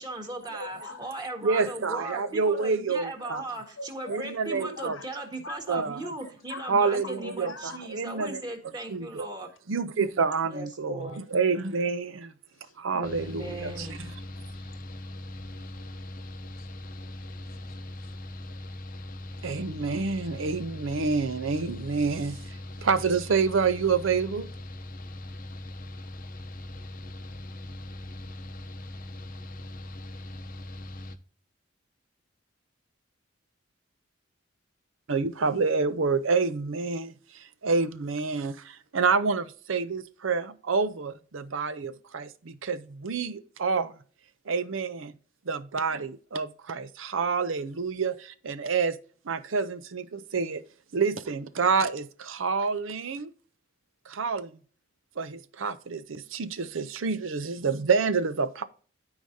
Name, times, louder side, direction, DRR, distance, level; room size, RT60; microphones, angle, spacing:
voice 1, 0.0-9.5 10.4-11.2 13.0-14.0, right 2 dB, 20° right, 1.7 m, -38 dB
voice 2, 0.6-1.1 1.5-2.3 3.2-3.4 3.8-5.1 5.4-6.7 7.0-7.8 10.3-10.4 11.0-11.2 12.5-12.8 13.7-13.9 14.7-18.6, left 3 dB, 75° left, 1.2 m, -46 dB
voice 3, 1.4-3.4 4.1-5.0 5.7-6.0 6.7-7.5 7.9-8.4 8.9-9.3 9.7-12.3 12.8-14.1 19.4-22.4 22.8-24.5 35.1-43.9 44.5-45.1 45.5-49.0 49.3-50.6 50.9-53.3 54.1-54.5 55.2-58.6, right 4 dB, 80° right, 0.6 m, -28 dB
Mechanical fan, 13.0-31.2, left 1 dB, 45° left, 0.7 m, -40 dB
13.0 x 4.9 x 2.7 m
head